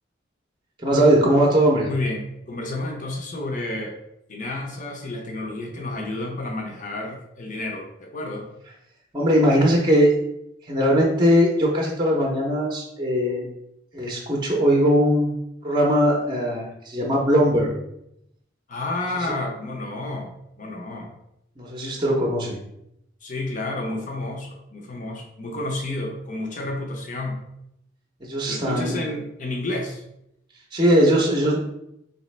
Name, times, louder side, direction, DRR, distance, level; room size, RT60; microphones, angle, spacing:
voice 1, 0.8-1.9 9.1-10.1 10.7-13.5 13.9-15.3 15.6-17.7 21.6-22.6 28.2-28.9 30.7-31.6, equal, 25° right, -2 dB, 0.6 m, -20 dB
voice 2, 1.9-3.9 4.3-8.5 18.7-21.1 23.2-27.4 28.5-30.0, left 2 dB, 40° left, 1 dB, 0.6 m, -30 dB
4.1 x 3.2 x 3.2 m, 0.80 s
head